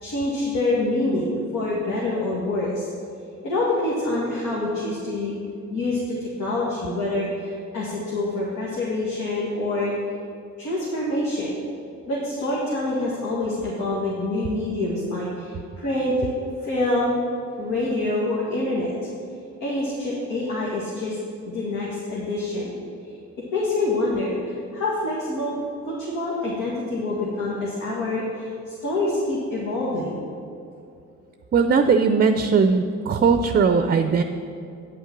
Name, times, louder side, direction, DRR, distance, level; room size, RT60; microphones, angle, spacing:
voice 1, 0.0-2.9 3.4-5.4 5.7-9.9 10.6-11.6 12.1-16.3 16.6-17.2 17.6-18.9 19.6-21.2 21.5-22.7 23.5-24.4 24.7-25.6 25.8-30.2, left 2 dB, 85° left, -6 dB, 1.9 m, -26 dB
voice 2, 31.5-34.2, right 5 dB, 30° right, 8 dB, 0.4 m, -19 dB
9.2 x 5.7 x 5.9 m, 2.5 s
cardioid pair, 90°, 30 cm